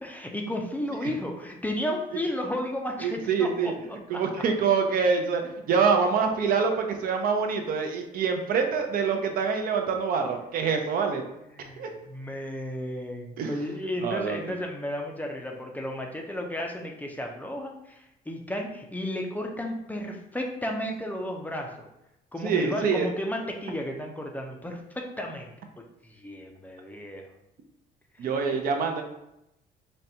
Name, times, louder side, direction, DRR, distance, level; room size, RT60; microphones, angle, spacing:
voice 1, 0.0-4.2 11.5-21.9 22.3-25.5 26.0-27.3 28.2-28.3, left 1 dB, 10° left, 1 dB, 0.4 m, -33 dB
voice 2, 3.0-3.7 4.1-11.2 11.6-11.9 13.4-13.5 14.0-14.6 22.4-23.1 28.2-29.0, right 5 dB, 60° right, 4 dB, 0.5 m, -25 dB
4.1 x 2.2 x 2.7 m, 0.85 s
cardioid pair, 110°, 17 cm